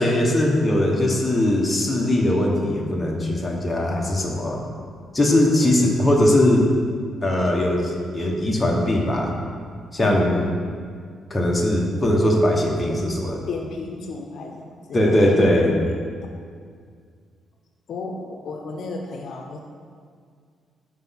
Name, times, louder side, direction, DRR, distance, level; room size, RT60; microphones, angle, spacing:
voice 1, 0.0-4.6 5.1-6.6 7.2-9.3 9.9-10.4 11.3-13.4 14.9-15.7, left 1 dB, 15° left, -1 dB, 1.0 m, -20 dB
voice 2, 10.0-10.5 12.8-13.1 13.5-15.6 17.9-19.6, left 3 dB, 60° left, 2 dB, 0.6 m, -33 dB
6.0 x 4.5 x 5.7 m, 2.1 s
cardioid pair, 130°, 0 cm